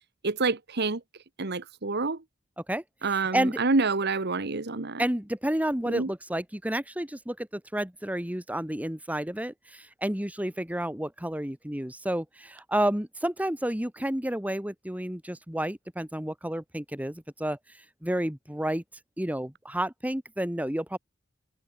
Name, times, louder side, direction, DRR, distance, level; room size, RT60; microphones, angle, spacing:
voice 1, 0.2-1.0 1.4-2.2 3.0-5.0 5.9-6.1, right 3 dB, 55° right, 1.4 m, -27 dB
voice 2, 2.6-3.6 5.0-18.8 19.2-21.0, right 1 dB, 10° right, 1.8 m, -31 dB
head